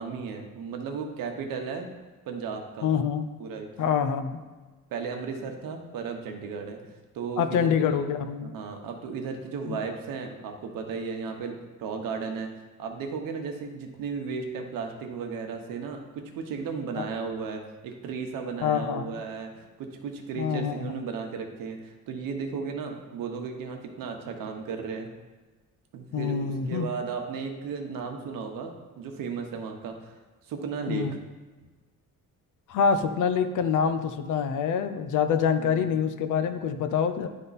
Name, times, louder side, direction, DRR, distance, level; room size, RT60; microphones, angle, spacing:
voice 1, 0.0-1.9 2.3-2.9 3.4-3.7 4.9-6.8 7.1-8.1 8.4-12.5 12.8-25.1 25.9-30.1 30.5-31.1 35.6-35.9, right 5 dB, 85° right, 3 dB, 1.1 m, -35 dB
voice 2, 2.8-3.2 3.8-4.4 7.4-8.5 9.7-9.8 18.6-19.2 20.4-20.8 26.1-26.9 30.9-31.2 32.7-37.3, left 7 dB, 65° left, 9 dB, 0.6 m, -26 dB
11.0 x 3.6 x 4.1 m, 1.3 s
cardioid pair, 150°, 33 cm